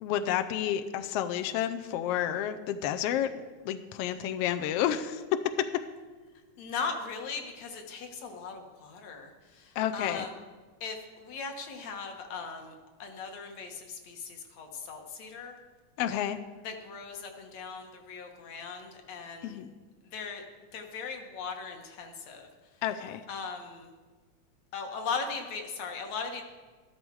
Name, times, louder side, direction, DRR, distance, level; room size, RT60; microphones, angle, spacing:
voice 1, 0.0-3.3 3.6-5.5 9.8-10.3 16.0-16.4 19.4-19.7 22.8-23.2, left 10 dB, 80° left, 9 dB, 1.4 m, -30 dB
voice 2, 6.6-10.3 10.8-12.7 13.0-15.6 16.6-19.6 20.1-20.5 20.7-22.5 23.3-23.9 24.7-26.4, left 5 dB, 65° left, 4 dB, 2.4 m, -38 dB
13.0 x 13.0 x 4.7 m, 1.4 s
omnidirectional pair, 3.4 m